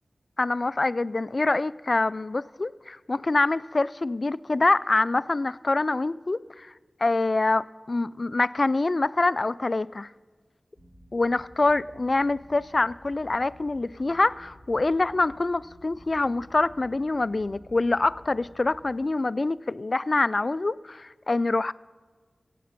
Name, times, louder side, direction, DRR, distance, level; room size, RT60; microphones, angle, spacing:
voice 1, 0.4-6.7 7.0-10.1 11.1-21.7, left 2 dB, 50° left, 18 dB, 0.3 m, -25 dB
sound 1, 10.8-18.9, equal, 45° right, 3.4 m, -52 dB
16.0 x 8.4 x 5.8 m, 1.5 s
wide cardioid pair, 55°, 0 cm